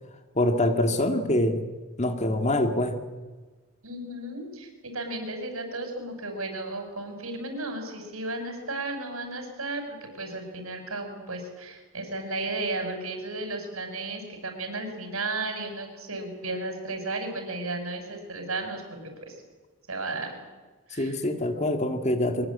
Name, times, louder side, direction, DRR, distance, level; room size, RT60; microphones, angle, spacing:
voice 1, 0.3-1.7 2.0-3.0 20.9-22.5, left 1 dB, 30° left, 6 dB, 2.2 m, -25 dB
voice 2, 3.8-19.3 19.9-20.3 20.9-21.2, right 2 dB, 75° right, 5 dB, 6.6 m, -34 dB
24.0 x 22.0 x 8.7 m, 1.3 s
head